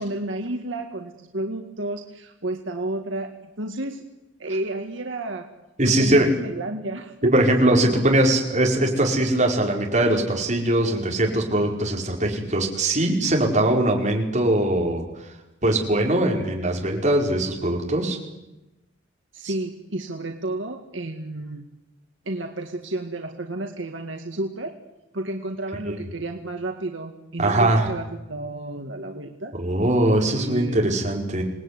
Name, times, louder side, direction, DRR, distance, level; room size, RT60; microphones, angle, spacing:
voice 1, 0.0-3.3 3.6-4.0 4.4-5.5 5.8-8.0 8.3-8.4 19.3-21.6 22.3-24.7 25.1-29.5 30.2-30.8, right 1 dB, 75° right, 4 dB, 2.0 m, -31 dB
voice 2, 5.8-6.3 7.3-15.0 15.6-18.2 19.4-19.5 25.9-26.0 27.4-27.9 29.5-31.4, right 1 dB, 40° right, 0 dB, 5.1 m, -21 dB
27.0 x 19.5 x 9.8 m, 0.98 s
head